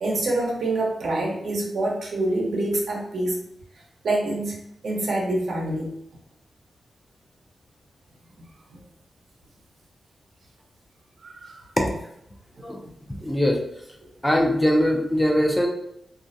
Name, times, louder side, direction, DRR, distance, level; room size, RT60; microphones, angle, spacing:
voice 1, 0.0-3.4 4.0-4.6 4.8-6.0 8.7-8.8 11.2-11.6, right 2 dB, 80° right, -2 dB, 0.7 m, -26 dB
voice 2, 13.2-13.6 14.2-15.7, equal, 5° left, 0 dB, 0.4 m, -21 dB
2.3 x 2.1 x 2.6 m, 0.74 s
wide cardioid pair, 140°, 0 cm